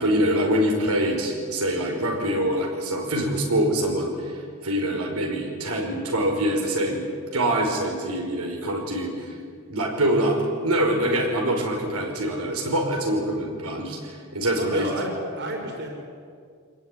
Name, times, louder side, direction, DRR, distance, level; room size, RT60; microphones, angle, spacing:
voice 1, 0.0-7.0 7.3-9.4 9.7-14.9, right 1 dB, 90° right, 1 dB, 5.1 m, -24 dB
voice 2, 14.6-16.0, right 1 dB, 55° right, 1 dB, 5.2 m, -31 dB
25.0 x 20.5 x 10.0 m, 2.2 s
head